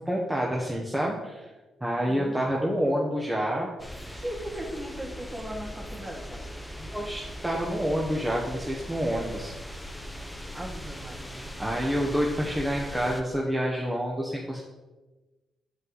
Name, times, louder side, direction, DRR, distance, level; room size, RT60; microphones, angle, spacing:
voice 1, 0.0-1.5 1.8-3.7 4.0-4.2 6.8-9.5 11.6-14.6, equal, 10° right, -3 dB, 1.1 m, -28 dB
voice 2, 2.0-2.4 4.1-6.5 10.5-11.5, right 1 dB, 30° right, -2 dB, 2.2 m, -38 dB
sound 1, 3.8-13.2, equal, 5° left, 0.8 m, -40 dB
7.8 x 5.2 x 4.1 m, 1.2 s
supercardioid pair, 55°, 0 cm